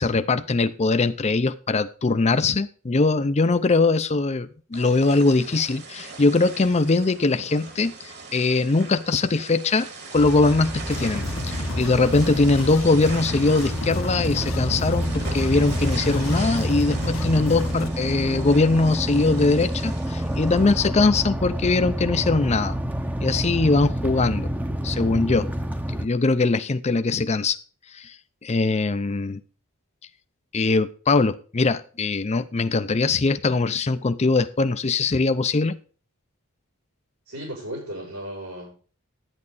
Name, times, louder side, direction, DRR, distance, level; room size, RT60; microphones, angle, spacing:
voice 1, 0.0-22.8 23.2-24.5 24.8-25.5 25.9-27.6 27.9-28.2 28.4-29.4 30.5-35.8, left 3 dB, 30° left, 11 dB, 0.5 m, -21 dB
sound 1, 4.7-20.8, right 4 dB, 50° right, 1.9 m, -40 dB
sound 2, 10.2-26.1, equal, 10° right, 0.8 m, -28 dB
sound 3, 10.8-17.9, left 3 dB, 65° left, 0.9 m, -32 dB
voice 2, 37.3-38.7, right 1 dB, 90° right, -8 dB, 7.3 m, -35 dB
11.0 x 9.6 x 4.1 m, 0.39 s
head